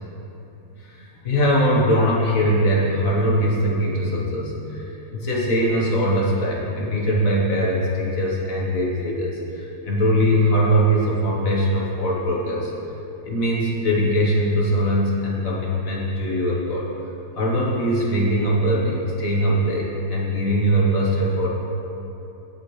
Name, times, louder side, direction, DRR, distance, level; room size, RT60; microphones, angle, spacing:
voice 1, 0.8-12.7 13.2-16.9 17.4-21.5, equal, 50° left, -4 dB, 1.6 m, -21 dB
17.0 x 6.2 x 3.3 m, 2.9 s
omnidirectional pair, 2.0 m